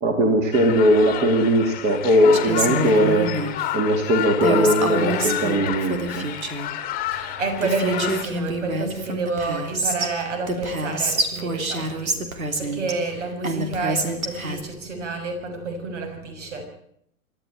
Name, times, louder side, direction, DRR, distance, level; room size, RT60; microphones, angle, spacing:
voice 1, 0.0-3.3 3.7-6.3, equal, 25° right, 4 dB, 2.8 m, -19 dB
sound 1, 0.5-8.2, left 12 dB, 20° left, 1.9 m, -30 dB
Female speech woman speaking, 2.3-3.6 4.4-6.7 7.3-7.4 7.6-10.1 10.5-12.9 13.4-14.6, right 2 dB, 75° right, 3.4 m, -27 dB
voice 2, 7.1-12.1 12.4-16.6, right 3 dB, 55° right, 5 dB, 6.5 m, -29 dB
26.5 x 12.5 x 9.0 m, 0.73 s
figure-of-eight pair, 120°, 42 cm